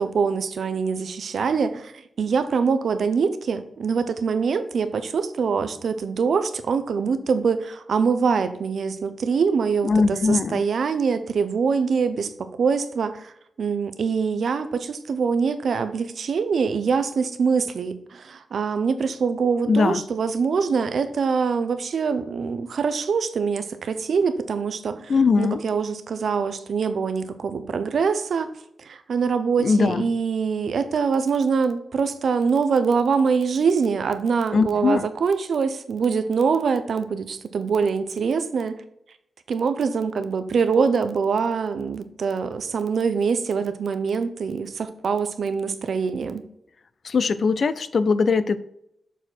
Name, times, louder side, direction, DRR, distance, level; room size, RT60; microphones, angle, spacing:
voice 1, 0.0-1.9 2.2-13.3 13.6-28.5 28.8-38.7 39.5-46.4, right 5 dB, 75° right, 11 dB, 0.6 m, -24 dB
voice 2, 9.8-10.6 19.7-20.0 25.1-25.6 29.6-30.0 34.5-35.1 47.0-48.6, left 4 dB, 60° left, 14 dB, 0.4 m, -20 dB
7.0 x 4.2 x 4.3 m, 0.77 s
wide cardioid pair, 125°, 0 cm